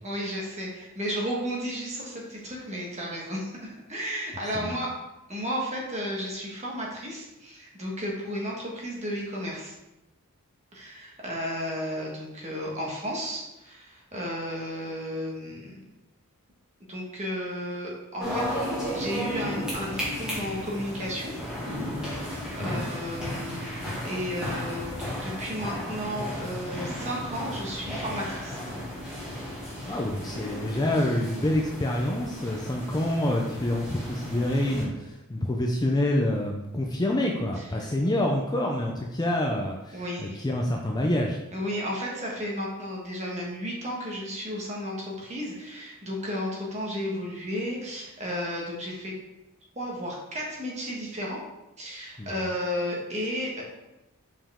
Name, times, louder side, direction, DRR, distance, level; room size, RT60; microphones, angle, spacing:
voice 1, 0.0-4.9 5.3-9.7 10.7-15.8 16.8-18.5 18.9-21.3 22.1-28.6 37.5-37.9 39.9-40.4 41.5-49.1 49.7-51.4 51.8-53.6, equal, 30° right, -3 dB, 1.5 m, -33 dB
sound 1, 18.2-34.8, equal, 5° right, 1.8 m, -34 dB
voice 2, 29.8-41.4 52.2-52.3, left 1 dB, 20° left, 0 dB, 0.5 m, -27 dB
5.4 x 5.0 x 3.6 m, 0.97 s
head